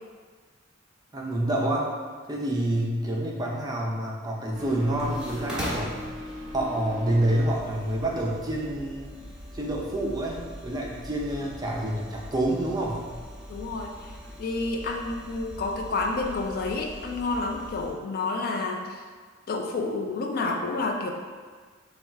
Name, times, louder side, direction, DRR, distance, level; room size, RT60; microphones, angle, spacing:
voice 1, 1.1-1.9 2.3-6.0 6.5-9.1 9.5-13.1, right 1 dB, 20° right, -3 dB, 0.5 m, -28 dB
sound 1, 4.5-17.9, equal, 5° right, 0.9 m, -40 dB
voice 2, 13.5-14.1 14.4-19.0 19.5-21.1, left 3 dB, 50° left, 2 dB, 0.3 m, -29 dB
3.4 x 2.3 x 4.1 m, 1.5 s
head